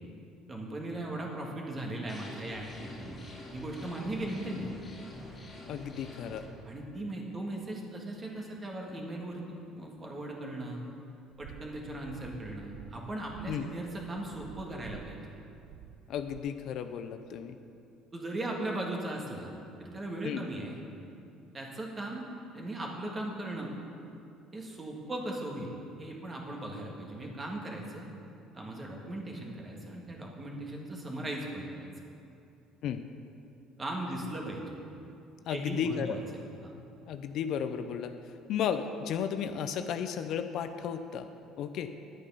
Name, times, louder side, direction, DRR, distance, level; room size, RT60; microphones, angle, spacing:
voice 1, 0.5-3.2 3.5-4.7 6.7-10.9 11.4-15.2 18.1-19.5 19.8-20.8 21.5-22.2 22.5-23.7 24.5-25.7 26.0-28.1 28.5-31.9 33.8-34.6 35.5-36.2 36.6-36.7, right 1 dB, 25° right, -1 dB, 1.6 m, -38 dB
sound 1, 2.1-6.5, left 1 dB, 25° left, 2.2 m, -46 dB
voice 2, 5.7-6.5 13.5-13.7 16.1-17.6 20.2-20.4 32.8-33.0 35.5-36.2 37.1-38.2 38.5-41.3 41.6-41.9, left 8 dB, 55° left, 9 dB, 0.5 m, -34 dB
sound 2, 11.3-16.4, right 10 dB, 80° right, 0.4 m, -50 dB
10.5 x 8.4 x 5.5 m, 2.6 s
cardioid pair, 135°, 0 cm